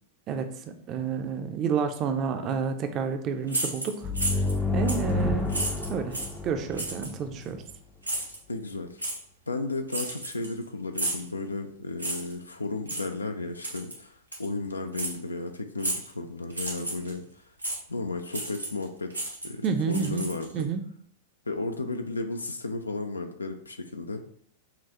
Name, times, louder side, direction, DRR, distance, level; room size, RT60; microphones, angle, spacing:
voice 1, 0.3-4.1 4.7-6.2 6.4-7.6 19.6-20.3 20.5-20.8, right 6 dB, 30° right, 7 dB, 0.5 m, -30 dB
sound 1, 3.5-4.6 4.9-5.1 5.5-6.4 6.8-7.1 8.0-8.4 9.0-9.2 9.9-10.6 10.9-11.3 12.0-12.3 12.9-13.1 13.6-14.0 14.3-14.5 14.9-15.2 15.8-16.1 16.5-17.1 17.6-17.8 18.3-18.8 19.1-20.6, right 2 dB, 85° right, 0.9 m, -32 dB
sound 2, 4.0-7.6, left 2 dB, 15° left, 0.5 m, -29 dB
voice 2, 8.5-9.0 9.5-17.2 17.9-20.7 21.5-24.2, left 3 dB, 80° left, 6 dB, 0.5 m, -34 dB
5.8 x 2.4 x 2.8 m, 0.62 s
figure-of-eight pair, 95°, 0 cm